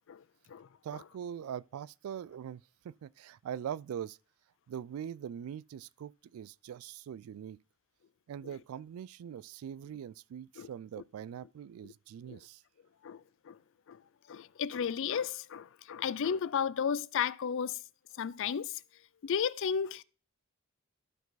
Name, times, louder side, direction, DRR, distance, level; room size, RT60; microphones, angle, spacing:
voice 1, 0.8-4.2 4.7-7.6 8.3-12.6, right 9 dB, 85° right, 0.3 m, -42 dB
voice 2, 14.3-17.8 18.2-18.8 19.2-20.0, left 7 dB, 65° left, 0.4 m, -33 dB
12.5 x 4.7 x 3.9 m
head